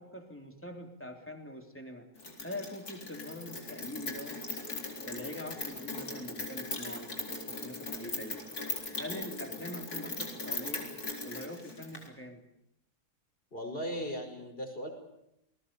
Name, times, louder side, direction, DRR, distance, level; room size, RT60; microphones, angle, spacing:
voice 1, 0.0-2.1 2.4-4.4 5.0-7.1 7.5-8.4 9.0-10.9 11.2-12.4 13.9-14.1, left 1 dB, 10° left, 3 dB, 3.3 m, -43 dB
Rain, 2.2-12.1, left 2 dB, 80° left, 4.7 m, -39 dB
voice 2, 13.5-14.9, equal, 35° left, 4 dB, 5.5 m, -37 dB
28.5 x 20.0 x 6.9 m, 0.80 s
omnidirectional pair, 1.6 m